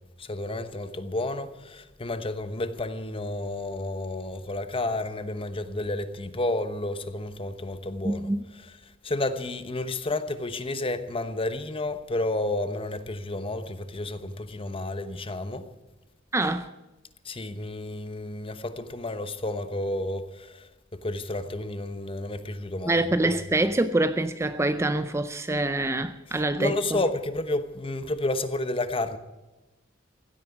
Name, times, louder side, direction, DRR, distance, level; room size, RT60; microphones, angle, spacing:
voice 1, 0.2-8.3 9.0-15.7 17.2-23.0 26.6-29.2, left 2 dB, 30° left, 1.0 m, -31 dB
voice 2, 8.0-8.4 16.3-16.7 22.9-27.0, right 2 dB, 15° right, 0.5 m, -25 dB
15.5 x 9.0 x 9.8 m
head